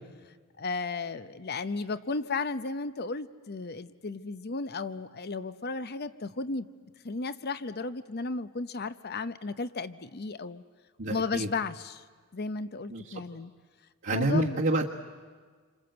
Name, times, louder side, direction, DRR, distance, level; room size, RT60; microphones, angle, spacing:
voice 1, 0.6-6.7 7.0-10.6 11.1-12.0 12.3-13.5 14.1-14.6, left 3 dB, 50° left, 13 dB, 0.8 m, -34 dB
voice 2, 11.0-11.5 12.9-13.2 14.0-14.9, right 2 dB, 60° right, -3 dB, 1.5 m, -28 dB
27.5 x 26.0 x 8.0 m, 1.5 s
head